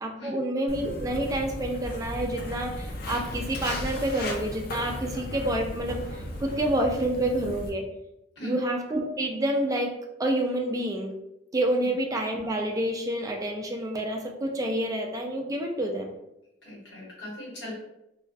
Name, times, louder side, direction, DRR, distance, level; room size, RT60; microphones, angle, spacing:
voice 1, 0.0-7.9 8.4-11.1 11.5-16.1, right 1 dB, 20° right, 2 dB, 0.3 m, -28 dB
Walk footsteps, 0.7-7.7, left 1 dB, 55° left, 0.4 m, -36 dB
voice 2, 16.6-17.7, left 2 dB, 75° left, -6 dB, 1.1 m, -39 dB
2.3 x 2.2 x 2.5 m, 0.86 s
head